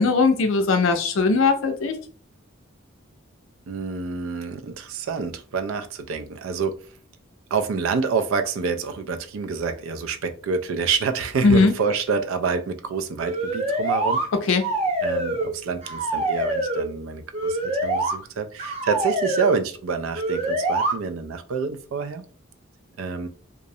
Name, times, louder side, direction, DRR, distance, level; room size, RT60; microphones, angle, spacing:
voice 1, 0.0-1.9 11.4-11.7 14.5-14.6, left 4 dB, 75° left, 0.4 m, -19 dB
voice 2, 3.7-6.7 7.5-14.2 14.5-14.6 15.0-22.2 23.0-23.3, right 5 dB, 80° right, 0.4 m, -27 dB
sound 1, 13.2-14.3 14.6-15.5 15.8-16.9 17.3-18.1 18.6-19.6 20.1-20.9, right 2 dB, 30° right, 0.6 m, -25 dB
2.5 x 2.0 x 2.6 m
head